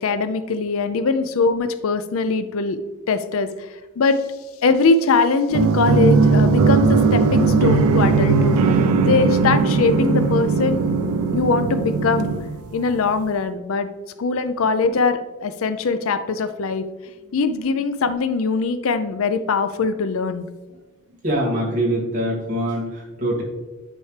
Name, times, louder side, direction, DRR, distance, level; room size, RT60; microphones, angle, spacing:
voice 1, 0.0-2.8 3.1-3.7 4.0-4.2 4.6-8.6 9.0-10.8 11.3-12.3 12.7-13.9 14.2-16.9 17.3-20.4, left 4 dB, 65° left, 11 dB, 0.5 m, -21 dB
sound 1, 5.5-13.1, right 4 dB, 75° right, 0.4 m, -18 dB
voice 2, 21.2-23.4, right 1 dB, 35° right, -4 dB, 2.3 m, -23 dB
9.9 x 4.6 x 3.2 m, 1.2 s
head